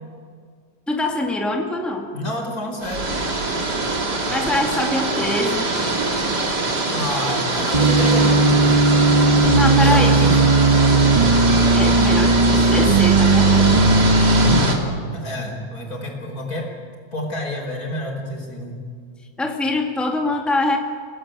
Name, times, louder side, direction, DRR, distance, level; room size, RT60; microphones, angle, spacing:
voice 1, 0.9-2.1 4.3-5.7 9.5-10.2 11.6-13.8 19.4-20.8, left 2 dB, ahead, 1 dB, 2.2 m, -24 dB
voice 2, 2.1-3.1 6.9-8.7 9.8-10.4 15.1-16.7 17.1-18.8, left 1 dB, 65° left, 1 dB, 5.6 m, -29 dB
sound 1, 2.8-14.7, right 2 dB, 85° right, 3.5 m, -23 dB
sound 2, 7.7-14.6, right 3 dB, 25° right, 1.4 m, -16 dB
30.0 x 18.0 x 9.1 m, 2.1 s
omnidirectional pair, 1.7 m